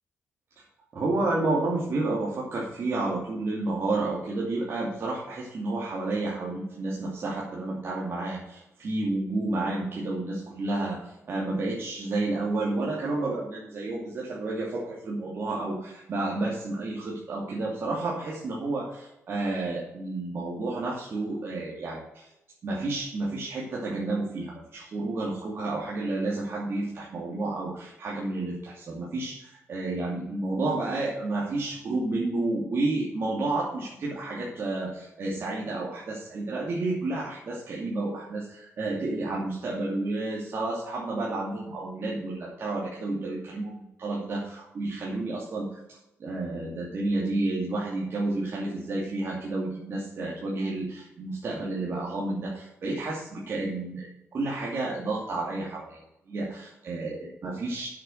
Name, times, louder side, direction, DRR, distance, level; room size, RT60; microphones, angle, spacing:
voice 1, 0.9-22.3 22.6-45.8 46.2-57.9, right 2 dB, 55° right, -5 dB, 2.7 m, -31 dB
7.9 x 7.2 x 8.0 m, 0.87 s
cardioid pair, 115°, 5 cm